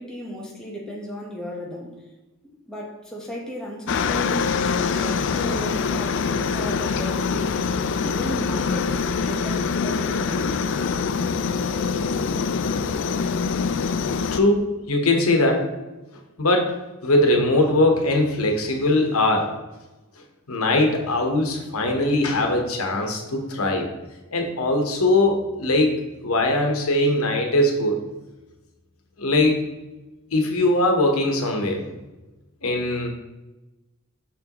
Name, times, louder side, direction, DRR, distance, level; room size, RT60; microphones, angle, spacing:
voice 1, 0.0-2.0 2.7-10.6, equal, 5° left, -3 dB, 1.1 m, -35 dB
Aircraft, 3.9-14.4, left 5 dB, 55° left, 0.4 m, -24 dB
voice 2, 14.3-15.6 16.4-16.7 17.0-19.5 20.5-23.9 24.3-25.9 26.2-28.0 29.2-29.6 30.3-31.8 32.6-33.1, left 2 dB, 80° left, 2 dB, 1.1 m, -21 dB
6.2 x 6.1 x 3.0 m, 1.1 s
head